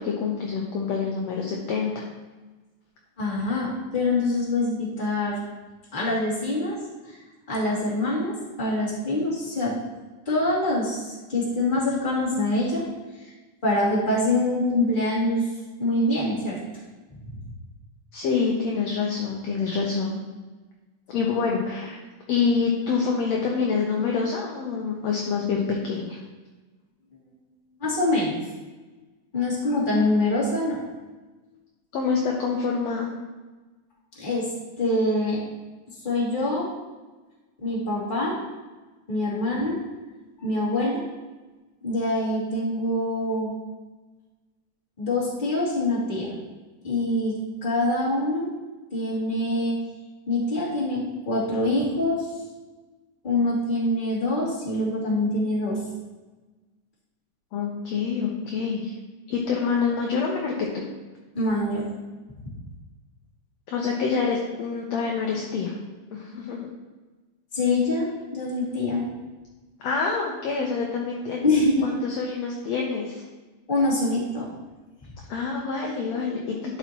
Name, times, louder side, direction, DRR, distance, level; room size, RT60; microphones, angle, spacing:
voice 1, 0.0-2.0 18.1-20.2 21.1-22.0 22.3-26.2 31.9-33.1 57.5-58.9 59.3-60.8 63.7-65.7 66.1-66.7 69.8-73.2 75.3-76.8, left 5 dB, 70° left, -1 dB, 1.7 m, -26 dB
voice 2, 3.2-5.4 5.9-6.8 7.0-7.2 7.5-9.8 10.3-12.9 13.1-13.3 13.6-15.5 15.8-16.6 17.3-17.4 27.8-28.3 29.3-30.8 34.2-34.5 34.8-35.4 36.0-36.7 37.6-38.4 39.1-39.8 40.4-41.0 41.8-43.5 45.0-46.3 46.8-48.5 48.9-49.8 50.3-52.3 53.2-55.8 61.3-61.9 67.5-69.1 71.4-71.9 73.7-74.5, left 2 dB, 15° left, -7 dB, 2.1 m, -25 dB
11.5 x 5.7 x 3.0 m, 1.2 s
omnidirectional pair, 3.9 m